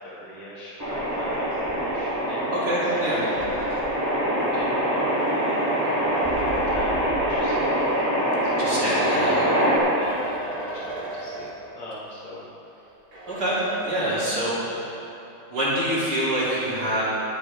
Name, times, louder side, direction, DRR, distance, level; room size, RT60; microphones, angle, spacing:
voice 1, 0.0-3.8 4.5-11.5 11.7-12.9 14.0-14.9, left 1 dB, 90° left, -8 dB, 2.7 m, -39 dB
sound 1, 0.8-9.8, equal, 10° right, 2.0 m, -24 dB
sound 2, 2.3-7.0 7.9-12.1 12.4-12.5 13.1-14.7, right 2 dB, 65° right, 2.7 m, -39 dB
voice 2, 2.5-3.2 8.6-9.4 13.3-14.6 15.5-17.0, right 1 dB, 45° right, -10 dB, 3.9 m, -25 dB
21.5 x 7.3 x 3.7 m, 3.0 s
omnidirectional pair, 2.3 m